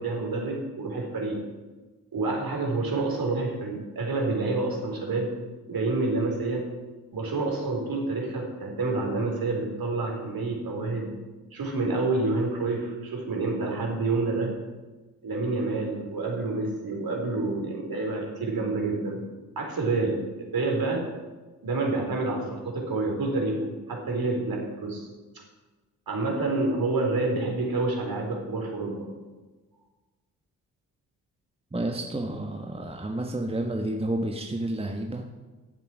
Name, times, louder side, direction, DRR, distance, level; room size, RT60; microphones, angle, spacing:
voice 1, 0.0-1.4 2.1-5.3 5.7-6.7 7.1-11.1 11.5-14.5 15.2-19.2 19.6-20.2 20.5-21.0 21.6-25.1 26.1-29.1, right 3 dB, 50° right, 0 dB, 4.1 m, -28 dB
voice 2, 31.7-35.3, right 1 dB, 15° right, 3 dB, 1.3 m, -30 dB
12.5 x 7.6 x 6.1 m, 1.2 s
hypercardioid pair, 40°, 45 cm